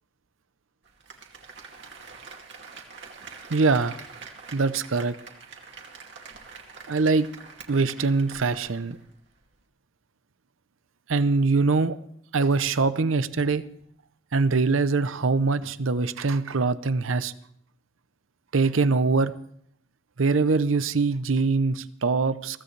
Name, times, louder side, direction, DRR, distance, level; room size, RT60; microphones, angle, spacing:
Applause, 0.8-9.0 9.4-9.5, right 5 dB, 60° right, 2.4 m, -45 dB
voice 1, 3.5-4.0 4.5-5.1 6.9-7.3 7.7-9.0 11.1-12.0 12.3-13.6 14.3-17.3 18.5-19.3 20.2-22.6, right 4 dB, 85° right, 14 dB, 0.7 m, -23 dB
23.0 x 16.0 x 3.3 m, 0.67 s
head